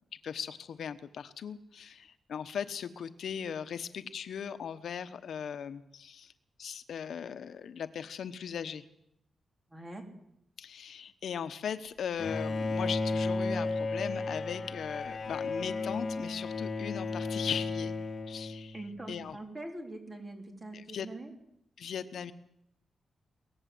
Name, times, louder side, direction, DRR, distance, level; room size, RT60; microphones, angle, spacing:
voice 1, 0.2-6.3 6.6-8.8 10.6-17.9 18.3-18.8 19.1-19.4 20.7-21.1 21.8-22.3, left 7 dB, 65° left, 11 dB, 1.0 m, -38 dB
voice 2, 9.7-10.0 18.7-21.3, right 2 dB, 20° right, 4 dB, 3.6 m, -43 dB
Bowed string instrument, 12.2-19.0, left 3 dB, 40° left, 2.0 m, -34 dB
23.0 x 18.5 x 7.8 m, 0.79 s
wide cardioid pair, 165°, 0 cm